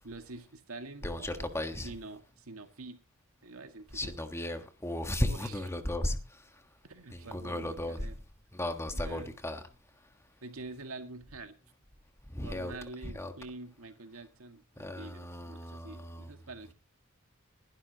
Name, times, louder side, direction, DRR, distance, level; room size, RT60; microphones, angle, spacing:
voice 1, 0.0-1.5 1.8-3.0 3.4-4.1 5.2-5.6 6.9-8.2 8.9-9.4 10.4-11.6 12.4-16.7, right 3 dB, 85° right, 1.9 m, -46 dB
voice 2, 1.0-1.9 3.9-6.2 7.1-8.1 8.5-9.6 12.3-12.7 13.1-13.3 14.8-16.3, left 1 dB, 15° left, 1.4 m, -35 dB
20.5 x 11.5 x 2.9 m
head